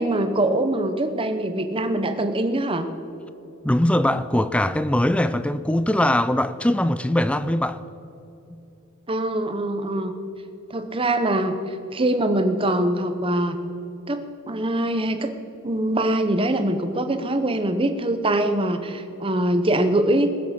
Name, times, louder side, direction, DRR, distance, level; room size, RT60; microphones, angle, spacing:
voice 1, 0.0-2.9 9.1-10.1 10.7-11.6 11.9-13.6 14.1-15.3 15.6-20.3, right 1 dB, 25° right, 0.9 m, -23 dB
voice 2, 3.6-7.8, left 1 dB, 5° left, 0.4 m, -21 dB
20.0 x 7.6 x 5.9 m
head